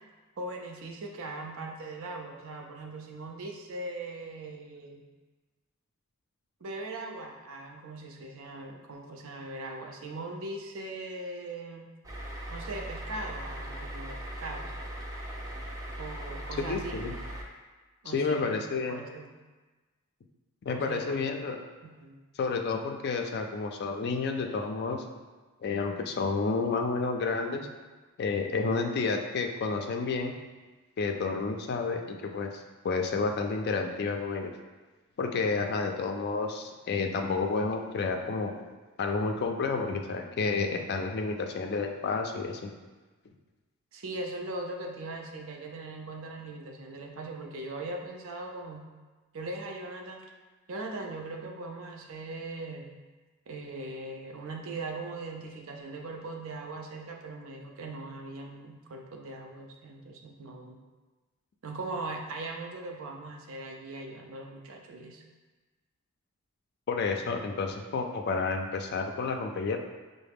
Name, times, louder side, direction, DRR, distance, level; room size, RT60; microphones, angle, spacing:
voice 1, 0.4-5.1 6.6-11.9 12.5-14.7 16.0-17.0 18.0-18.6 18.9-19.3 20.7-21.2 21.8-22.2 43.9-48.8 49.3-50.2 50.7-52.9 53.5-60.8 61.6-65.2, right 2 dB, 70° right, 1 dB, 0.5 m, -40 dB
sound 1, 12.0-17.4, right 1 dB, 15° right, 0.5 m, -39 dB
voice 2, 16.6-17.2 18.1-19.0 20.6-21.6 22.4-25.0 25.6-27.7 28.2-30.4 31.0-34.5 35.2-38.5 39.0-42.7 66.9-69.8, left 4 dB, 50° left, 4 dB, 0.4 m, -30 dB
5.6 x 2.1 x 3.4 m, 1.2 s
head